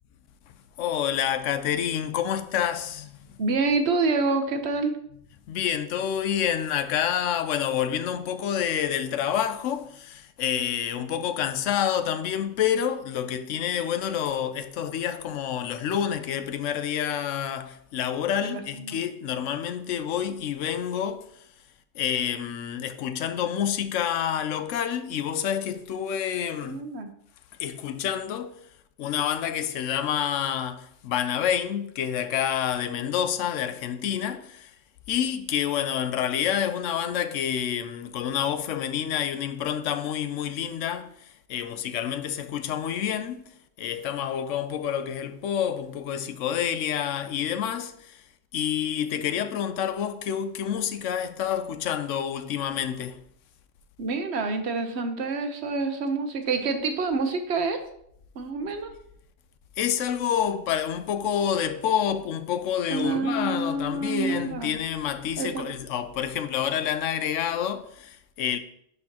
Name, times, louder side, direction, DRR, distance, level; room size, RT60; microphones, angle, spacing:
voice 1, 0.8-3.2 5.5-21.3 21.9-26.8 27.6-28.6 29.0-34.7 35.1-43.5 43.8-48.2 48.5-53.2 59.8-68.6, left 9 dB, 90° left, 1.0 m, -28 dB
voice 2, 3.4-4.9 18.4-19.0 26.6-27.1 54.0-57.8 58.4-58.9 62.9-64.8 65.4-65.7, right 3 dB, 65° right, 1.0 m, -27 dB
11.0 x 4.2 x 2.9 m
omnidirectional pair, 1.2 m